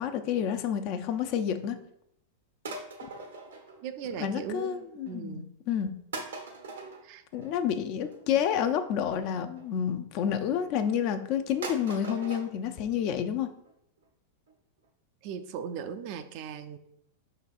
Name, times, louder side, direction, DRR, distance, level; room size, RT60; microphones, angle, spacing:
voice 1, 0.0-1.8 4.2-6.0 7.3-13.5, left 8 dB, 50° left, 7 dB, 0.5 m, -29 dB
sound 1, 2.6-4.3 4.6-5.1 5.7-5.8 6.1-9.7 10.4-11.0 11.3-11.4 11.6-12.5 12.8-12.9 13.2-13.3 13.7-13.8 14.0-14.1 14.5-14.6 14.8-14.9 15.4-15.5 15.7-15.8, right 3 dB, 80° right, 0.8 m, -42 dB
voice 2, 3.8-5.5 7.0-7.2 8.3-8.4 15.2-16.8, right 7 dB, 50° right, 10 dB, 0.4 m, -38 dB
5.3 x 3.9 x 2.5 m, 0.74 s
hypercardioid pair, 100°, 0 cm